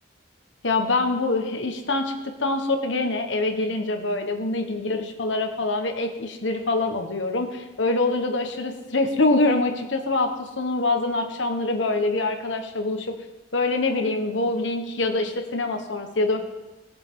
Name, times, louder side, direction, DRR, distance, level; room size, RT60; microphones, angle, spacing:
voice 1, 0.6-13.1 13.5-16.4, left 2 dB, 70° left, 5 dB, 1.4 m, -25 dB
19.5 x 6.8 x 3.8 m, 1.1 s
head